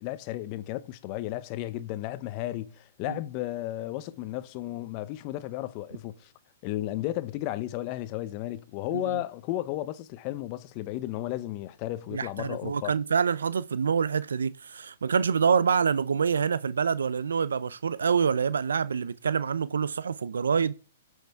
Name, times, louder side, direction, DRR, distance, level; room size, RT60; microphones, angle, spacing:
voice 1, 0.0-6.3 6.6-12.9, left 15 dB, 40° left, 0.7 m, -34 dB
voice 2, 12.1-20.7, right 6 dB, 90° right, 0.5 m, -26 dB
18.0 x 6.4 x 3.5 m
hypercardioid pair, 135°, 0 cm